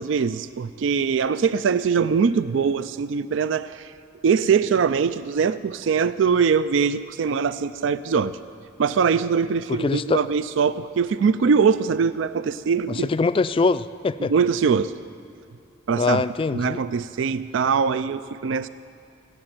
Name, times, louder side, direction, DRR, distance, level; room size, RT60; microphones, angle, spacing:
voice 1, 0.0-3.9 4.2-8.4 8.8-13.1 14.2-14.9 15.9-16.2 16.5-18.7, right 6 dB, 70° right, 14 dB, 0.4 m, -22 dB
voice 2, 9.7-10.2 12.9-14.3 16.0-16.8, left 4 dB, 25° left, 14 dB, 0.3 m, -23 dB
17.0 x 7.8 x 9.0 m, 2.4 s
head